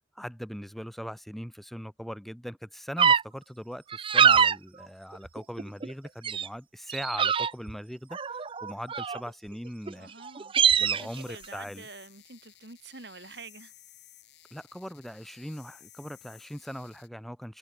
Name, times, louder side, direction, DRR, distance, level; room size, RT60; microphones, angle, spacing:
voice 1, 0.1-3.8 4.1-10.1 10.8-11.9 14.5-17.6, equal, ahead, 1.5 m, -40 dB
sound 1, 3.0-3.2 3.9-4.5 5.1-5.9 6.2-6.5 6.9-7.7 8.1-9.3 9.9-10.0 10.2-11.0, right 7 dB, 30° right, 0.5 m, -23 dB
voice 2, 9.9-13.7, right 4 dB, 70° right, 3.1 m, -47 dB
sound 2, 10.7-17.1, left 14 dB, 75° left, 5.8 m, -55 dB
head